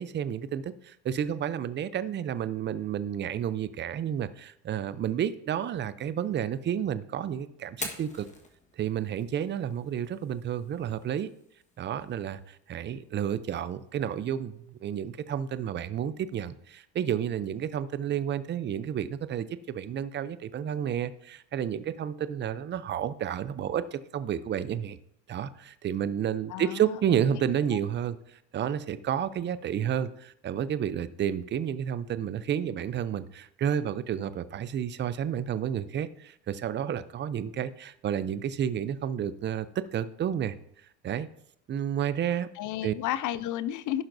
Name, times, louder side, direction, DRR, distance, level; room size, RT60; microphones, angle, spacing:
voice 1, 0.0-8.3 8.8-11.3 11.8-25.0 25.3-40.6 41.0-41.3 41.7-42.5 42.8-42.9, right 9 dB, 25° right, 15 dB, 0.4 m, -31 dB
Fire, 7.7-15.6, left 3 dB, 15° left, 1.3 m, -47 dB
voice 2, 26.5-27.0 42.6-44.0, left 12 dB, 45° left, 17 dB, 0.5 m, -32 dB
15.0 x 5.8 x 2.6 m, 0.72 s
supercardioid pair, 100°, 44 cm